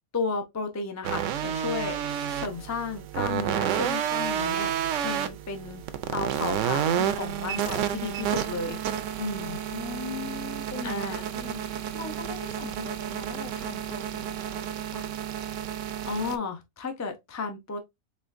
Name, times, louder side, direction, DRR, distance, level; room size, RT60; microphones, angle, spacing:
voice 1, 0.1-4.7 5.0-5.8 6.1-8.8 9.2-9.6 10.8-11.2 16.1-17.8, left 4 dB, 25° left, 0.3 m, -33 dB
sound 1, 1.0-16.4, right 9 dB, 70° right, 0.8 m, -30 dB
voice 2, 9.4-15.2, left 4 dB, 80° left, 2.0 m, -41 dB
4.3 x 3.5 x 2.5 m
omnidirectional pair, 1.5 m